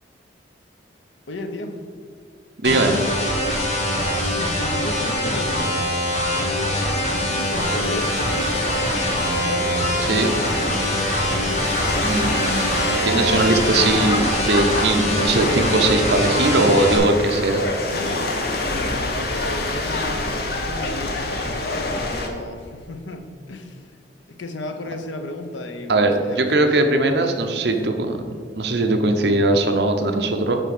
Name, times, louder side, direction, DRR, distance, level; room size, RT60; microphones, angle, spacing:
voice 1, 1.3-1.8 4.1-5.8 7.1-8.2 9.4-10.1 17.9-23.9 24.3-27.7, left 2 dB, 85° left, 7 dB, 0.7 m, -34 dB
sound 1, 2.6-17.0, equal, 35° left, 1.3 m, -23 dB
voice 2, 2.6-3.0 10.1-10.3 12.0-17.6 25.9-28.2 28.6-30.6, right 2 dB, 65° right, 5 dB, 0.7 m, -20 dB
sound 2, 5.9-22.3, left 2 dB, 55° left, 0.9 m, -27 dB
8.8 x 3.4 x 6.0 m, 2.2 s
head